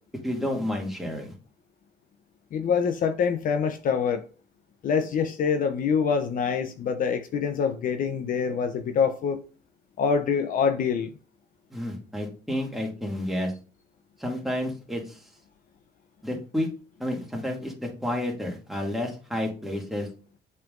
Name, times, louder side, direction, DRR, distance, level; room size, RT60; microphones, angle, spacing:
voice 1, 0.2-1.3 11.7-13.5 14.2-15.2 16.2-16.7 17.0-20.1, left 1 dB, ahead, 2.2 m, -30 dB
voice 2, 2.5-4.2 4.8-9.4 10.0-11.1, left 6 dB, 55° left, 0.7 m, -25 dB
7.6 x 5.6 x 2.5 m
cardioid pair, 110°, 17 cm